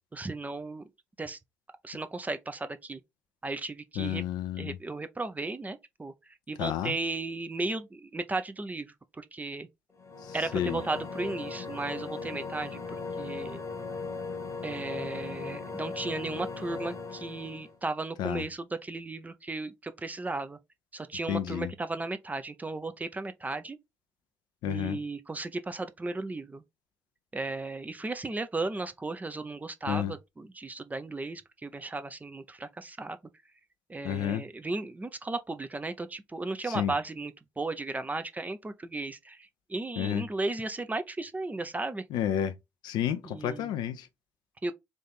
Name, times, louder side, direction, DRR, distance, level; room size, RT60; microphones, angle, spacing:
voice 1, 0.1-0.9 1.2-1.4 1.8-3.0 3.4-4.2 4.6-9.7 10.3-12.8 13.2-13.6 14.6-20.6 20.9-23.8 24.6-26.6 27.3-33.2 33.9-42.1 43.2-43.7 44.6-44.7, right 2 dB, 20° right, 0.7 m, -35 dB
voice 2, 4.0-4.7 6.6-6.9 10.2-10.8 18.2-18.4 21.3-21.7 24.6-25.0 29.9-30.1 34.0-34.4 36.7-36.9 40.0-40.2 42.1-42.6 42.8-44.1, left 10 dB, 65° left, 0.5 m, -31 dB
sound 1, 9.9-17.8, left 4 dB, 35° left, 1.1 m, -38 dB
3.6 x 2.7 x 3.9 m
hypercardioid pair, 45°, 8 cm